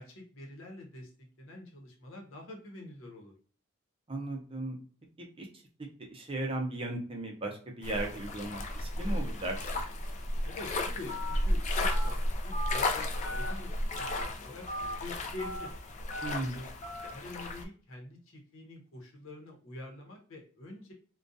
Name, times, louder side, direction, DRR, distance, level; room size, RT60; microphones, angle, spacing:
voice 1, 0.0-3.3 10.4-15.7 16.2-16.7 17.1-20.9, left 2 dB, 80° left, 1 dB, 0.8 m, -46 dB
voice 2, 4.1-4.8 5.4-5.5 6.1-9.7 16.2-16.6, right 2 dB, 30° right, 2 dB, 0.6 m, -36 dB
sound 1, 7.8-17.7, left 1 dB, 35° left, 0.3 m, -33 dB
Telephone, 11.1-11.4 11.8-12.1 12.5-12.8 13.2-13.5 13.9-14.2 14.7-14.9 15.4-15.7 16.1-16.4 16.8-17.1, equal, 55° left, 1.0 m, -38 dB
2.4 x 2.2 x 2.6 m, 0.43 s
head